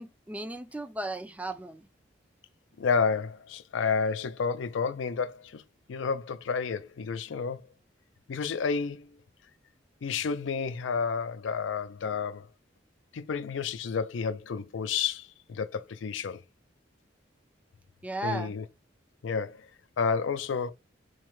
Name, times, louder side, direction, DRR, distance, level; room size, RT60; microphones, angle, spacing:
voice 1, 0.0-1.9 18.0-18.5, right 2 dB, 10° right, 0.3 m, -36 dB
voice 2, 2.8-5.6 5.9-7.6 8.3-9.1 10.0-12.5 13.1-16.4 18.2-18.7 19.2-19.6 20.0-20.7, left 5 dB, 90° left, 0.4 m, -30 dB
4.5 x 2.1 x 3.0 m
head